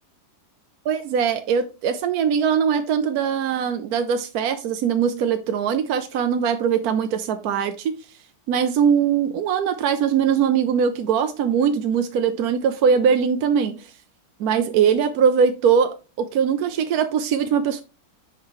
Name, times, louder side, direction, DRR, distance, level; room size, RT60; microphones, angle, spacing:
voice 1, 0.9-7.9 8.5-13.9 14.4-17.8, right 7 dB, 70° right, 1.1 m, -21 dB
5.9 x 5.6 x 3.1 m
omnidirectional pair, 1.8 m